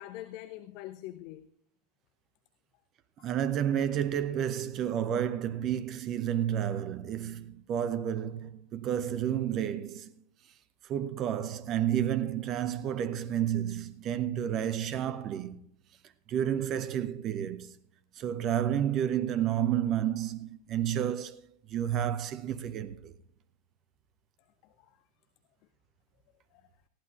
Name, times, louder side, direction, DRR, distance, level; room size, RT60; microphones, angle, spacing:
voice 1, 0.0-1.5 3.2-3.3 24.6-25.0 26.5-26.7, left 14 dB, 45° left, 0.6 m, -44 dB
voice 2, 3.2-10.1 10.9-15.6 16.3-17.7 18.2-21.4 21.7-23.1, right 10 dB, 35° right, 0.8 m, -30 dB
19.5 x 15.0 x 2.5 m
figure-of-eight pair, 90°, 0 cm